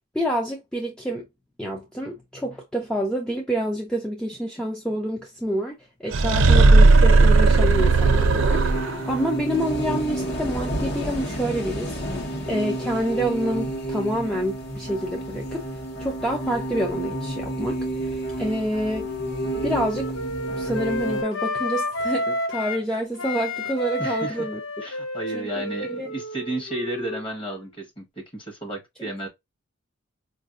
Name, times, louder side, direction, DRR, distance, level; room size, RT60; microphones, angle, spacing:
voice 1, 0.1-1.3 1.6-15.6 16.0-19.1 19.6-20.1 20.6-24.6 25.3-26.1, equal, 5° left, 0.5 m, -28 dB
sound 1, 6.1-9.1, right 3 dB, 70° right, 0.4 m, -15 dB
sound 2, 6.8-21.2, right 1 dB, 55° left, 1.2 m, -31 dB
Wind instrument woodwind instrument, 18.3-22.8 23.1-27.7, left 2 dB, 75° left, 0.7 m, -31 dB
voice 2, 24.0-24.5 24.8-29.3, right 2 dB, 25° left, 1.2 m, -33 dB
4.8 x 2.6 x 2.4 m
head